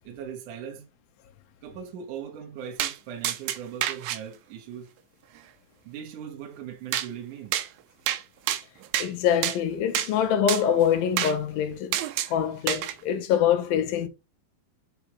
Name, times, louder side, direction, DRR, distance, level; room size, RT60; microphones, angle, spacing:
voice 1, 0.0-0.9 1.6-4.9 5.8-7.6, right 8 dB, 70° right, 2.5 m, -39 dB
sound 1, 2.8-3.0 3.2-4.2 6.9-7.1 7.5-7.7 8.1-8.2 8.5-9.1 9.4-9.6 9.9-10.1 10.5-10.6 11.2-11.4 11.9-12.3 12.7-12.9, right 12 dB, 85° right, 2.5 m, -27 dB
voice 2, 9.0-12.0 12.3-14.1, left 9 dB, 90° left, 2.7 m, -24 dB
8.1 x 4.8 x 3.0 m
omnidirectional pair, 4.1 m